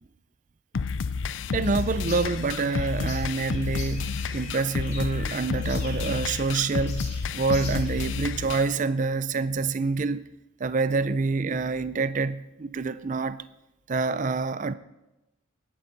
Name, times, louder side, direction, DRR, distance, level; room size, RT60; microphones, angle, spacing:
sound 1, 0.7-8.7, left 5 dB, 65° left, 0.4 m, -30 dB
sound 2, 1.4-8.2, left 3 dB, 35° left, 4.1 m, -43 dB
voice 1, 1.5-10.2 10.6-13.4 13.9-14.7, right 4 dB, 40° right, 0.4 m, -27 dB
18.5 x 11.0 x 5.3 m
head